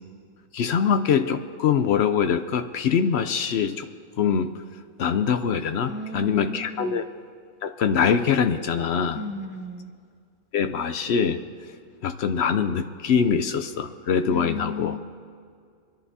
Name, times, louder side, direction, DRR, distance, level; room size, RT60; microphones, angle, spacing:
voice 1, 0.5-3.9 4.2-4.5 5.0-7.0 7.6-9.2 10.5-11.4 12.0-14.9, left 7 dB, 65° left, 9 dB, 0.8 m, -23 dB
voice 2, 5.9-7.0 9.1-9.9 14.3-15.0, left 1 dB, 15° right, 4 dB, 0.4 m, -34 dB
26.0 x 10.5 x 2.7 m, 2.2 s
omnidirectional pair, 1.3 m